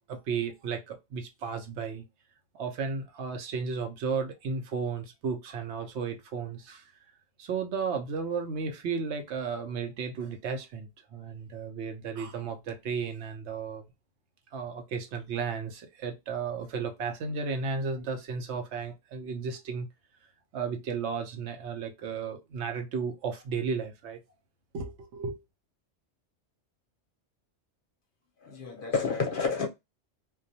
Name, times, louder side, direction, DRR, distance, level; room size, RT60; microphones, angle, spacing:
voice 1, 0.1-2.0 2.5-6.8 7.4-13.8 14.5-19.9 20.5-24.2 24.7-25.4, right 5 dB, 70° right, 0.9 m, -34 dB
voice 2, 28.4-29.7, left 5 dB, 55° left, 0.7 m, -29 dB
2.3 x 2.2 x 2.6 m
omnidirectional pair, 1.2 m